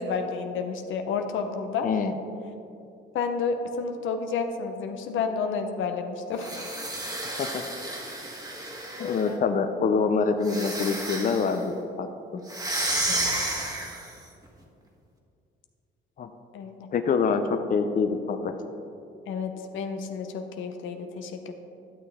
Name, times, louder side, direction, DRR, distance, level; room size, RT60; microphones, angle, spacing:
voice 1, 0.0-1.9 3.1-6.6 9.0-9.4 13.1-13.4 16.5-16.9 19.3-21.5, left 5 dB, 80° left, 5 dB, 0.8 m, -31 dB
sound 1, 6.3-9.3 10.4-11.6 12.5-14.2, right 1 dB, 20° right, 1.4 m, -31 dB
voice 2, 9.0-11.7 12.0-12.4 16.2-16.3 16.9-18.5, left 5 dB, 45° left, 7 dB, 0.6 m, -25 dB
12.0 x 6.6 x 3.6 m, 2.6 s
cardioid pair, 90°, 20 cm